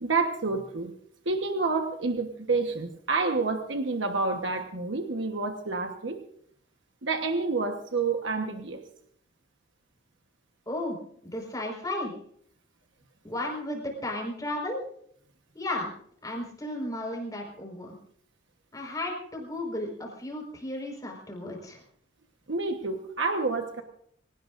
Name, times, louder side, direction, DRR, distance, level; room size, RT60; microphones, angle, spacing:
voice 1, 0.0-0.9 1.2-6.2 7.0-8.8 22.5-23.8, right 3 dB, 70° right, 4 dB, 1.3 m, -28 dB
voice 2, 10.7-12.1 13.2-14.8 15.5-15.9 16.2-17.9 18.7-21.8, left 1 dB, 20° left, 1 dB, 4.9 m, -34 dB
25.0 x 18.0 x 2.6 m, 0.65 s
head